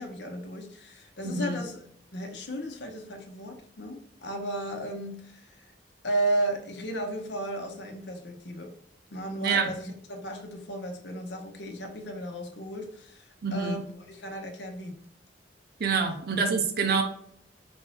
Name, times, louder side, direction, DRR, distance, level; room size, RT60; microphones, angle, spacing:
voice 1, 0.0-1.8 2.1-5.7 6.0-8.7 9.1-13.8 14.1-14.9 16.1-16.2, right 1 dB, 75° left, 3 dB, 1.0 m, -34 dB
voice 2, 1.2-1.6 9.4-9.7 13.4-13.8 15.8-17.0, right 5 dB, 60° right, 5 dB, 0.7 m, -26 dB
5.1 x 2.7 x 3.3 m, 0.66 s
head